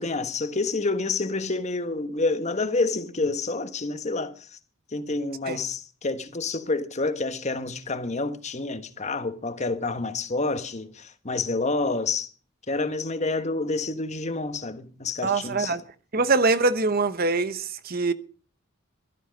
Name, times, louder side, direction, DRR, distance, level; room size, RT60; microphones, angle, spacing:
voice 1, 0.0-4.6 4.9-12.3 12.7-15.7, left 3 dB, 35° left, 1.3 m, -28 dB
voice 2, 15.2-15.8 16.1-18.1, right 3 dB, 45° right, 1.0 m, -23 dB
15.5 x 12.5 x 5.2 m
head